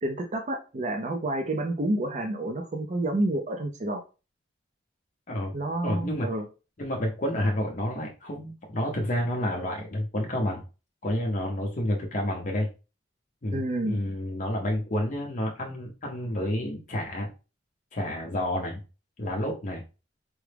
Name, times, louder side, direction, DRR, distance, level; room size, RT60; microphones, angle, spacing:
voice 1, 0.0-4.0 5.5-6.4 13.5-14.0, right 1 dB, 40° right, 3 dB, 0.5 m, -29 dB
voice 2, 5.8-6.3 6.8-10.6 11.0-12.7 13.4-17.3 17.9-18.8 19.2-19.8, left 1 dB, 40° left, 0 dB, 0.6 m, -29 dB
4.7 x 2.0 x 3.3 m, 0.31 s
head